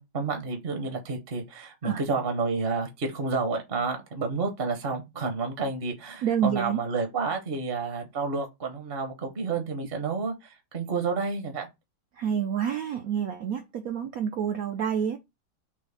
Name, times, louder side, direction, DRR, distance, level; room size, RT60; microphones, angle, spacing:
voice 1, 0.0-11.7, right 4 dB, 45° right, 0.8 m, -30 dB
voice 2, 6.2-6.8 12.2-15.2, right 8 dB, 80° right, 0.7 m, -28 dB
6.1 x 2.1 x 3.3 m
omnidirectional pair, 2.1 m